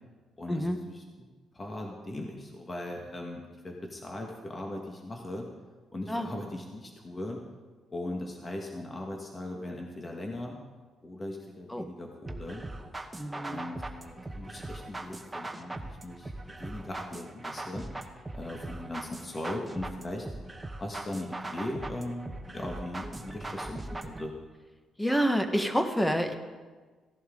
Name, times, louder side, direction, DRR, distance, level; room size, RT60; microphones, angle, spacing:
voice 1, 0.4-1.0 1.5-5.5 5.9-7.4 7.9-10.6 11.0-12.6 13.3-17.9 18.3-20.3 20.8-24.3, left 1 dB, 25° left, 1 dB, 1.7 m, -39 dB
sound 1, 12.3-24.3, right 2 dB, 15° right, 1.1 m, -40 dB
voice 2, 13.2-13.6 25.0-26.3, equal, 5° left, 6 dB, 1.3 m, -28 dB
16.5 x 11.5 x 3.9 m, 1.4 s
cardioid pair, 90°, 0 cm